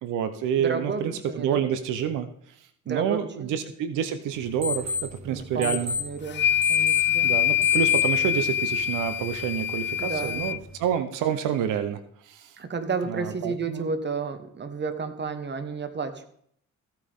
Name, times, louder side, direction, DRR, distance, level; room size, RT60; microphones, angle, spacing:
voice 1, 0.0-2.3 2.9-5.9 7.2-12.6 13.1-13.9, right 9 dB, 90° right, 11 dB, 0.8 m, -28 dB
voice 2, 0.6-1.6 2.8-3.6 5.3-7.3 10.0-10.5 12.6-16.3, right 4 dB, 35° right, 9 dB, 1.5 m, -32 dB
sound 1, 4.3-10.9, left 4 dB, 60° right, 2.1 m, -34 dB
sound 2, 6.3-10.6, left 11 dB, 40° left, 0.4 m, -24 dB
15.5 x 9.0 x 3.7 m, 0.65 s
cardioid pair, 90°, 30 cm